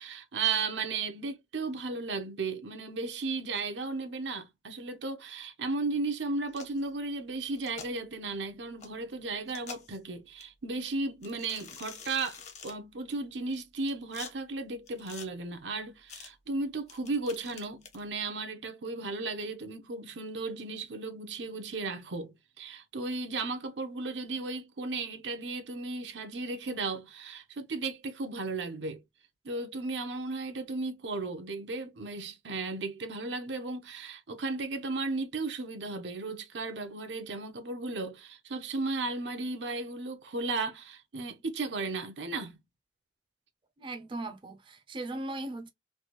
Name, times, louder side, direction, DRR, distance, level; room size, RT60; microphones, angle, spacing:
voice 1, 0.0-29.0 29.4-42.6, right 3 dB, 80° right, 0.7 m, -35 dB
sound 1, 6.5-6.8 7.6-7.9 8.8-8.9 9.5-10.0 10.4-10.5 11.2-12.7 13.5-14.3 14.9-15.3 16.1-16.3 16.9-18.0, left 6 dB, 40° left, 0.9 m, -46 dB
voice 2, 43.8-45.7, right 2 dB, 30° right, 0.5 m, -38 dB
3.3 x 2.4 x 2.9 m
head